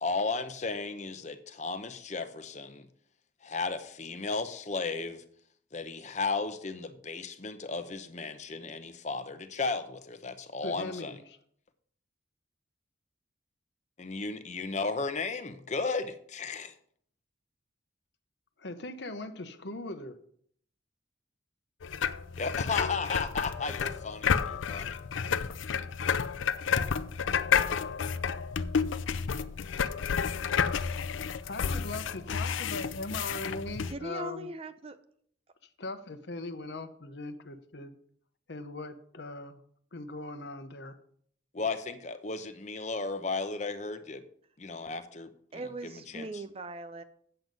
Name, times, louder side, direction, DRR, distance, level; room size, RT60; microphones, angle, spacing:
voice 1, 0.0-2.9 3.4-5.2 5.7-11.2 14.0-16.7 22.4-25.0 41.5-44.2 44.6-46.3, left 4 dB, 40° left, 10 dB, 0.8 m, -34 dB
voice 2, 10.6-11.4 18.6-20.2 31.4-34.5 35.8-38.0 38.5-39.6 39.9-41.0, left 2 dB, 65° left, 9 dB, 0.9 m, -40 dB
sound 1, 21.8-33.9, left 6 dB, 90° left, 0.5 m, -31 dB
voice 3, 33.9-35.0 45.5-47.0, right 1 dB, 30° right, 11 dB, 0.5 m, -39 dB
7.8 x 7.8 x 5.3 m, 0.63 s
head